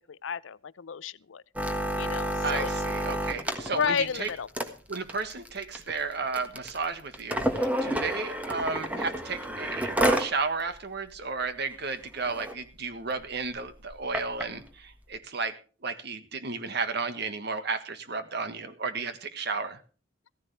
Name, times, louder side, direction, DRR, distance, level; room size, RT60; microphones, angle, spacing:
voice 1, 0.1-1.4 2.0-2.7 3.5-4.5, left 6 dB, 85° left, 0.5 m, -32 dB
sound 1, 1.6-10.3 10.8-10.9 11.1-11.4 11.9-12.0 12.2-12.5 13.2-14.4 15.2-15.3, right 1 dB, 10° right, 1.5 m, -30 dB
voice 2, 2.4-4.3 4.9-15.5 15.8-19.8, right 4 dB, 60° right, 1.5 m, -33 dB
15.0 x 14.5 x 3.3 m
head